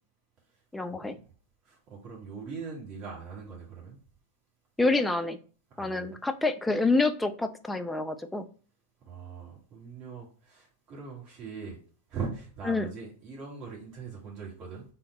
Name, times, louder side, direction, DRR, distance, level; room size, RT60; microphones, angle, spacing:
voice 1, 0.7-1.2 4.8-5.4 5.8-8.4 12.7-12.9, left 3 dB, 5° left, 8 dB, 0.3 m, -27 dB
voice 2, 1.6-4.0 5.7-6.2 9.0-11.8 12.1-14.8, right 5 dB, 35° right, -4 dB, 1.5 m, -41 dB
3.9 x 2.1 x 3.8 m, 0.41 s
figure-of-eight pair, 90°, 0 cm